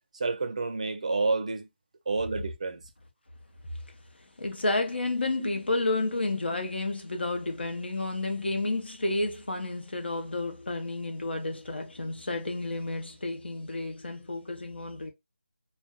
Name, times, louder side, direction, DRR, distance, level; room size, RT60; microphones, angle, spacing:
voice 1, 0.1-1.7 2.1-2.8 5.4-5.5, right 3 dB, 40° right, 0.5 m, -29 dB
voice 2, 4.4-15.1, left 2 dB, 75° left, 0.9 m, -31 dB
2.5 x 2.2 x 3.4 m
figure-of-eight pair, 170°, 6 cm